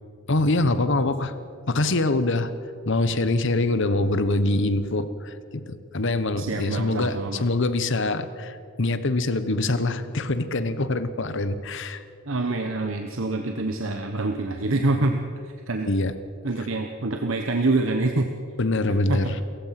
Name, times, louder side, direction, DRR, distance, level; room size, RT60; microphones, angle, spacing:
voice 1, 0.3-1.3 1.7-2.5 2.9-12.0 15.8-16.1 18.6-19.4, left 2 dB, 60° left, 12 dB, 1.1 m, -24 dB
voice 2, 6.4-7.5 12.3-15.9 16.4-18.3 18.9-19.4, right 2 dB, 75° right, 4 dB, 1.2 m, -26 dB
29.0 x 15.5 x 6.0 m, 2.5 s
head